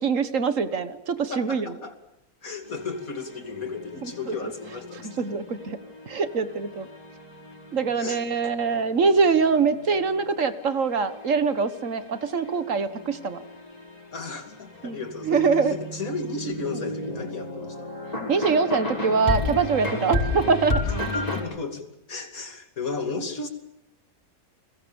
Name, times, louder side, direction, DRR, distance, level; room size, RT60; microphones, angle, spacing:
voice 1, 0.0-1.7 4.0-4.5 5.2-5.8 6.1-6.9 7.7-13.4 14.8-15.7 18.3-20.8, right 5 dB, 60° right, 12 dB, 1.7 m, -24 dB
voice 2, 1.3-2.0 2.4-5.3 8.0-8.5 14.1-17.9 20.9-23.5, left 4 dB, 70° left, 7 dB, 3.2 m, -34 dB
sound 1, 2.6-21.4, left 1 dB, 25° left, 5.3 m, -34 dB
29.5 x 22.0 x 7.1 m, 0.82 s
omnidirectional pair, 1.5 m